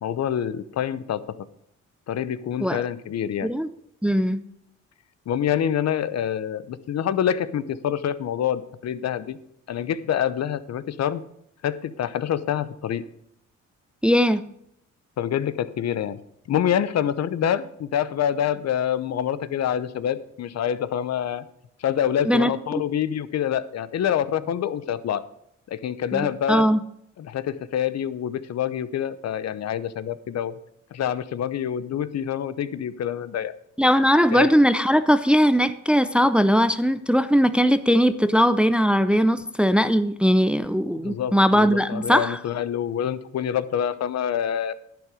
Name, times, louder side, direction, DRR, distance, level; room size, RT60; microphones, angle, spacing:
voice 1, 0.0-1.4 2.1-3.5 5.3-9.4 9.7-11.2 11.6-13.0 15.2-16.2 16.5-21.4 21.8-25.2 25.7-26.7 27.2-30.6 30.9-33.5 34.3-34.5 41.0-44.7, left 9 dB, 60° left, 0.8 m, -26 dB
voice 2, 4.0-4.4 14.0-14.5 22.3-22.8 26.1-26.8 33.8-42.4, equal, 5° right, 0.6 m, -20 dB
10.5 x 9.2 x 5.0 m
cardioid pair, 90°, 30 cm